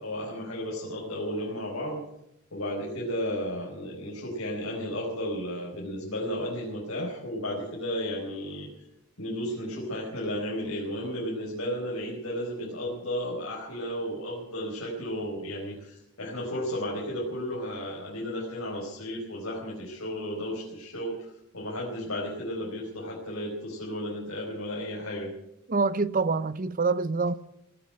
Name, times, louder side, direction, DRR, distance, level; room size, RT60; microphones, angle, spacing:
voice 1, 0.0-2.0 2.5-8.7 9.2-21.3 21.5-25.3, equal, 85° left, 4.8 m, -33 dB
voice 2, 25.7-27.3, right 4 dB, 40° right, 0.7 m, -26 dB
19.0 x 8.5 x 9.0 m
head